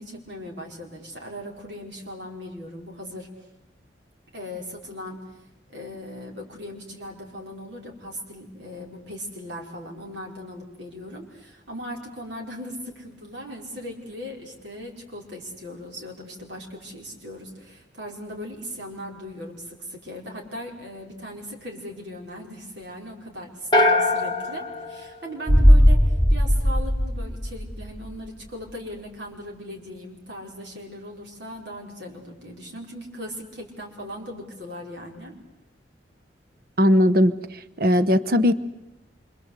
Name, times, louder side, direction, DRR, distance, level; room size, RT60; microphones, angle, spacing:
voice 1, 0.0-3.3 4.3-5.2 5.7-35.3, equal, 70° right, 0 dB, 5.3 m, -38 dB
sound 1, 23.7-26.0, left 2 dB, 25° left, 1.2 m, -23 dB
sound 2, 25.5-28.2 28.5-28.6, equal, ahead, 3.9 m, -18 dB
voice 2, 36.8-37.3 37.8-38.5, left 1 dB, 50° right, 14 dB, 1.0 m, -18 dB
27.0 x 25.5 x 8.3 m, 0.93 s
head